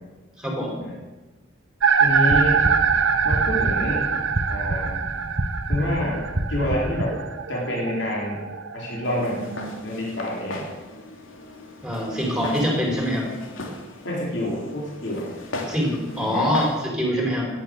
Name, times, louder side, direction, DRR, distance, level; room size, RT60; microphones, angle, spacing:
voice 1, 0.4-0.8 11.8-13.3 15.7-17.5, equal, 5° right, -1 dB, 4.5 m, -24 dB
sound 1, 1.8-9.8, right 6 dB, 70° right, 1.2 m, -24 dB
voice 2, 1.9-2.6 3.2-4.0 4.5-5.0 5.7-6.2 6.5-7.2 7.5-8.4 8.7-9.4 9.8-10.8 14.0-15.3 16.1-16.5, left 1 dB, 60° left, -3 dB, 4.1 m, -27 dB
sound 2, 2.3-7.0, right 1 dB, 50° right, 1.1 m, -28 dB
Walk footsteps, 9.0-16.8, left 2 dB, 85° left, 2.6 m, -37 dB
17.0 x 10.0 x 6.7 m, 1.2 s
head